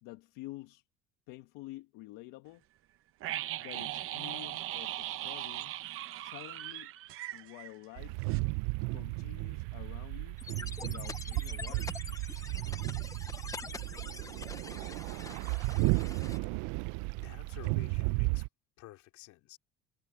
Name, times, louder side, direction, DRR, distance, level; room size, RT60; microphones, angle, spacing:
voice 1, 0.0-0.8 1.3-2.6 3.6-5.8 6.1-6.9 7.3-8.2 8.9-10.4 10.8-12.1, left 18 dB, 85° left, 1.5 m, -49 dB
sound 1, 3.2-8.0 8.3-8.4, right 14 dB, 45° right, 0.8 m, -39 dB
sound 2, 8.0-18.5, right 24 dB, 75° right, 0.5 m, -34 dB
sound 3, 10.4-16.4, left 4 dB, 10° left, 0.6 m, -45 dB
voice 2, 17.1-18.5 18.8-19.6, left 17 dB, 65° left, 3.1 m, -52 dB
cardioid pair, 175°, 32 cm